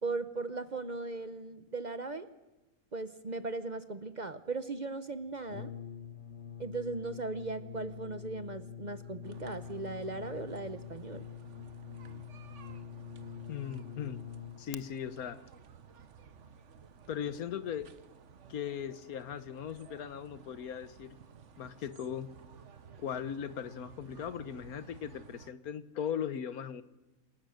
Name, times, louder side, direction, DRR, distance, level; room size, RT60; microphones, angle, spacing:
voice 1, 0.0-2.3 2.9-5.7 6.6-11.2, right 3 dB, 35° right, 12 dB, 0.8 m, -38 dB
Brass instrument, 5.5-14.8, left 8 dB, 55° left, 1.1 m, -45 dB
sound 1, 9.2-25.5, right 7 dB, 55° right, 1.3 m, -55 dB
voice 2, 13.5-14.2 14.6-15.4 17.1-17.9 18.5-21.2 21.6-22.3 23.0-26.8, left 8 dB, 85° left, 14 dB, 1.5 m, -38 dB
27.0 x 19.5 x 6.5 m, 1.1 s
omnidirectional pair, 1.5 m